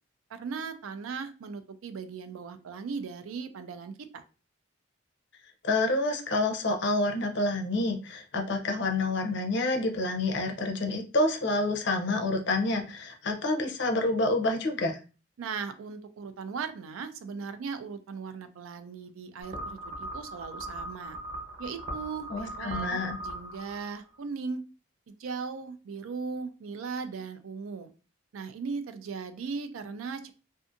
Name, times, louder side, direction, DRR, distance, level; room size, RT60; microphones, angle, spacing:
voice 1, 0.3-4.2 15.4-21.2 21.6-24.6 25.1-27.9 28.3-30.3, right 5 dB, 80° right, 9 dB, 0.4 m, -38 dB
voice 2, 5.6-15.0 22.3-23.2, left 2 dB, 55° left, 4 dB, 0.5 m, -28 dB
sound 1, 19.4-24.1, right 1 dB, 40° right, 0.9 m, -39 dB
2.5 x 2.5 x 2.5 m, 0.34 s
head